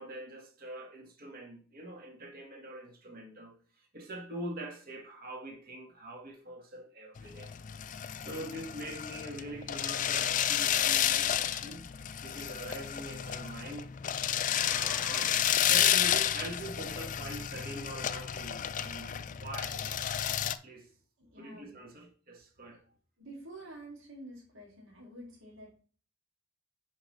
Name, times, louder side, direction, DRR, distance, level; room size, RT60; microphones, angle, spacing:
voice 1, 0.0-7.5 8.2-11.9 12.2-13.9 14.6-15.4 15.7-20.0 20.6-20.9 21.4-22.8, right 1 dB, 45° right, 1.5 m, -44 dB
sound 1, 7.2-20.6, left 10 dB, 40° left, 0.3 m, -31 dB
voice 2, 21.2-21.7 23.2-25.7, right 1 dB, 65° right, 2.3 m, -48 dB
9.4 x 4.8 x 3.1 m
head